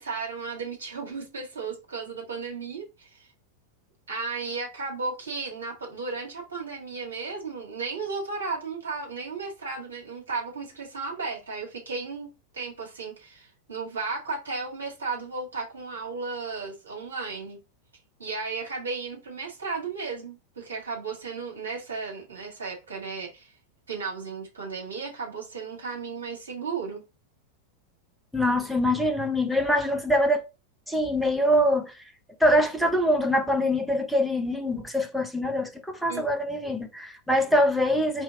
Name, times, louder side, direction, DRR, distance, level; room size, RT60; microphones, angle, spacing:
voice 1, 0.0-3.3 4.1-17.6 18.2-23.5 23.9-27.0 36.1-36.2, right 4 dB, 70° right, 2.1 m, -34 dB
voice 2, 28.3-30.4 30.9-32.0 32.4-38.2, equal, ahead, 0.8 m, -24 dB
4.4 x 3.2 x 3.8 m
figure-of-eight pair, 90°, 0 cm